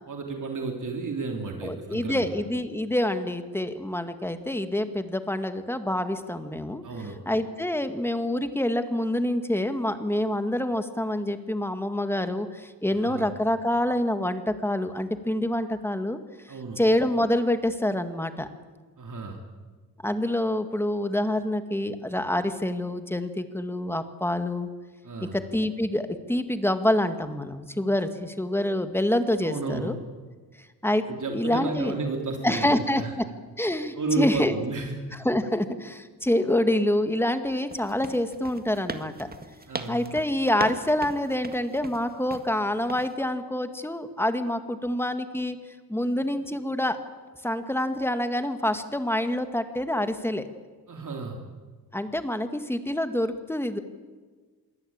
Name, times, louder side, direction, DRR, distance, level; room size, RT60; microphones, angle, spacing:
voice 1, 0.1-2.3 6.8-7.2 13.0-13.3 16.5-16.8 19.0-19.4 25.0-25.4 29.4-29.9 31.1-33.1 33.9-35.0 39.7-40.0 50.9-51.4, right 3 dB, 50° right, 3 dB, 3.2 m, -32 dB
voice 2, 1.6-16.2 16.8-18.5 20.0-24.7 25.2-30.0 30.8-32.0 32.4-33.2 33.6-34.6 35.1-39.3 39.9-45.6 45.9-47.0 47.4-50.5 51.9-53.8, left 1 dB, 5° left, 9 dB, 1.9 m, -27 dB
sound 1, 37.7-42.5 42.9-43.1, right 3 dB, 25° right, 1.8 m, -38 dB
26.5 x 23.0 x 8.9 m, 1.4 s
wide cardioid pair, 140°, 38 cm